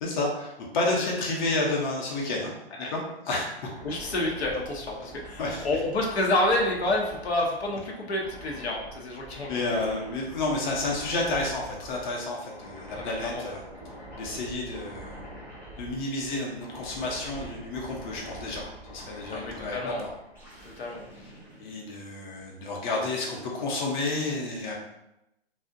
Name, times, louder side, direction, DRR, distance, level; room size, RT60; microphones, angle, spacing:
voice 1, 0.0-2.5 2.9-3.5 5.4-5.7 9.5-13.6 14.2-15.2 15.8-20.1 21.6-24.7, left 2 dB, 50° left, -2 dB, 0.7 m, -30 dB
sound 1, 3.6-22.5, right 1 dB, 5° left, 0.5 m, -45 dB
voice 2, 3.8-9.5 12.9-13.5 19.3-20.1 20.8-21.0, left 1 dB, 85° left, -1 dB, 0.7 m, -29 dB
2.5 x 2.1 x 2.4 m, 0.87 s
hypercardioid pair, 140°, 31 cm